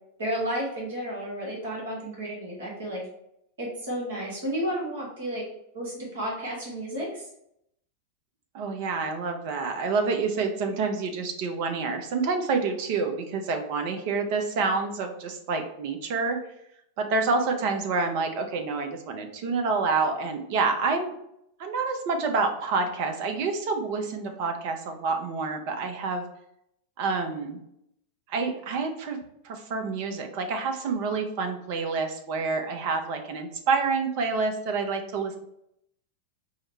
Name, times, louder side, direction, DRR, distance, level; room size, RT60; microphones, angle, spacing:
voice 1, 0.2-3.0 3.6-5.4 5.7-7.3, equal, 65° right, -3 dB, 1.4 m, -32 dB
voice 2, 8.5-16.4 17.0-21.1 21.6-26.2 27.0-27.6 28.3-35.4, right 4 dB, 45° right, 5 dB, 0.7 m, -28 dB
4.7 x 2.2 x 4.2 m, 0.77 s
figure-of-eight pair, 90°, 0 cm